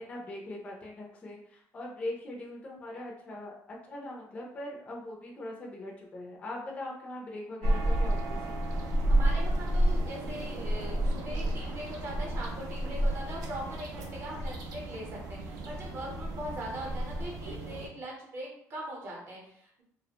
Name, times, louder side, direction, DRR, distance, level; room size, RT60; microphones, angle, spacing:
voice 1, 0.0-3.6 3.9-8.6, left 1 dB, 20° left, -1 dB, 0.4 m, -41 dB
sound 1, 7.6-17.9, right 1 dB, 70° right, 0.4 m, -31 dB
voice 2, 9.1-19.8, equal, 40° right, -2 dB, 0.7 m, -41 dB
2.4 x 2.1 x 2.8 m, 0.70 s
cardioid pair, 175°, 6 cm